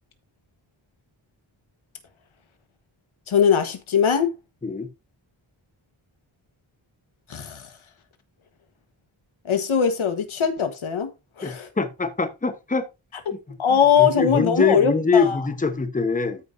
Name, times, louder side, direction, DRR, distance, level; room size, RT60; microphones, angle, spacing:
voice 1, 3.3-4.3 7.3-7.7 9.4-11.1 11.4-11.7 13.3-13.4 13.6-15.4, left 7 dB, 90° left, 1.5 m, -21 dB
voice 2, 11.4-12.8 13.3-13.6 14.0-16.4, left 4 dB, 15° left, 1.0 m, -23 dB
13.5 x 5.1 x 2.7 m
wide cardioid pair, 140°, 47 cm